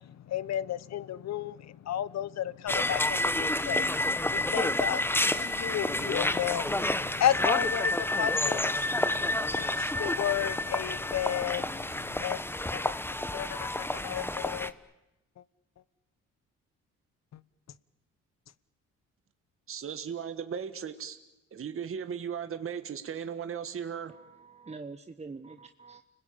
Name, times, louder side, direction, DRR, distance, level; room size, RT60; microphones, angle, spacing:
voice 1, 0.3-3.9 4.3-8.7 9.1-11.7 12.2-12.4 12.7-12.9 13.3-14.7, left 11 dB, 60° left, 1.0 m, -33 dB
sound 1, 2.7-14.7, left 1 dB, 5° left, 1.1 m, -29 dB
voice 2, 19.7-21.2 21.5-24.1, right 7 dB, 45° right, 1.8 m, -36 dB
voice 3, 24.1-26.0, right 4 dB, 20° right, 1.0 m, -45 dB
30.0 x 20.5 x 8.7 m
cardioid pair, 90°, 30 cm